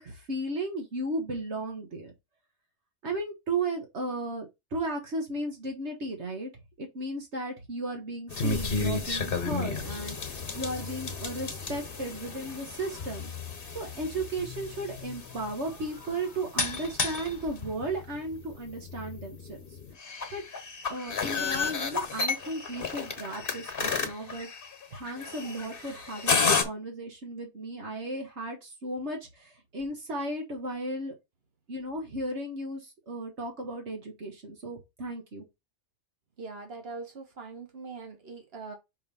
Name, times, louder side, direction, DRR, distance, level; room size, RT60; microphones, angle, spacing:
voice 1, 0.0-2.1 3.0-6.5 6.8-10.2 10.5-13.3 13.7-19.6 20.3-20.4 20.9-24.5 24.9-31.1 31.7-35.4, right 2 dB, 75° right, 1.8 m, -35 dB
sound 1, 8.3-26.6, left 4 dB, 55° left, 1.5 m, -32 dB
voice 2, 36.4-38.7, right 4 dB, 60° right, 1.8 m, -42 dB
5.5 x 3.5 x 5.5 m
omnidirectional pair, 1.2 m